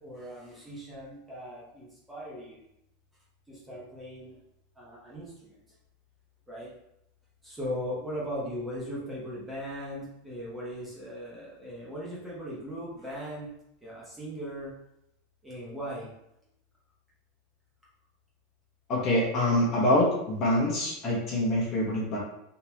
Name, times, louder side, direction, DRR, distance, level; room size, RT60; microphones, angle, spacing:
voice 1, 0.0-2.6 3.5-4.4 4.8-5.5 6.5-6.7 7.4-13.5 13.8-14.7 15.4-16.1, equal, 5° right, -7 dB, 0.9 m, -38 dB
voice 2, 18.9-22.2, left 1 dB, 30° left, -3 dB, 1.0 m, -25 dB
3.7 x 2.9 x 2.8 m, 0.80 s
supercardioid pair, 165°, 0 cm